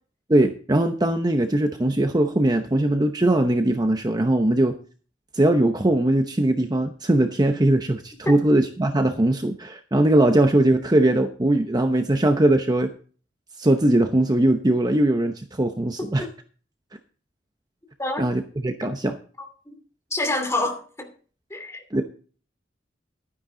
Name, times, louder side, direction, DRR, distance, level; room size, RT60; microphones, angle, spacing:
voice 1, 0.3-4.7 5.3-12.9 13.6-16.2 18.2-19.1 21.9-22.0, right 1 dB, 20° right, 0.8 m, -20 dB
voice 2, 20.1-21.1 21.5-21.8, left 2 dB, 15° left, 2.6 m, -27 dB
12.0 x 9.8 x 3.8 m
head